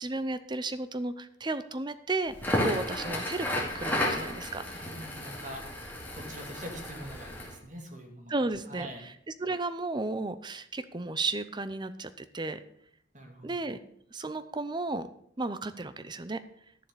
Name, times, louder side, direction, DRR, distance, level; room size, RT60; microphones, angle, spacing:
voice 1, 0.0-4.7 8.3-9.1 9.4-12.6 13.4-13.8 14.1-15.1 15.4-16.4, right 2 dB, 25° right, 13 dB, 0.6 m, -33 dB
Crackle, 2.3-7.5, left 1 dB, 10° left, 2.6 m, -33 dB
voice 2, 4.7-5.6 6.1-8.3 8.7-9.1 13.1-13.5, right 1 dB, 40° right, 3 dB, 2.2 m, -44 dB
11.5 x 7.3 x 6.8 m, 0.68 s
head